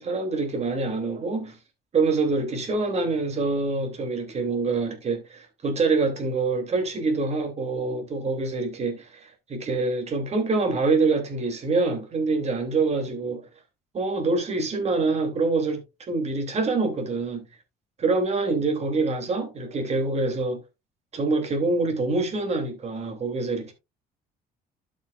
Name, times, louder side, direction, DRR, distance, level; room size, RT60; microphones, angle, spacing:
voice 1, 0.0-1.6 1.9-13.4 13.9-17.4 18.0-20.6 21.1-23.7, right 3 dB, 40° right, 2.7 m, -25 dB
12.0 x 6.3 x 2.4 m
cardioid pair, 110°, 17 cm